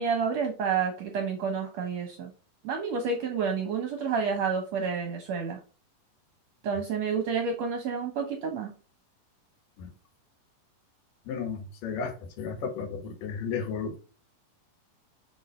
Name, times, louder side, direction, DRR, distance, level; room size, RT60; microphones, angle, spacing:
voice 1, 0.0-2.3 2.6-5.6 6.6-8.7, right 5 dB, 70° right, 1.7 m, -29 dB
voice 2, 11.3-14.0, left 6 dB, 75° left, 2.7 m, -33 dB
5.4 x 5.3 x 4.2 m
omnidirectional pair, 4.0 m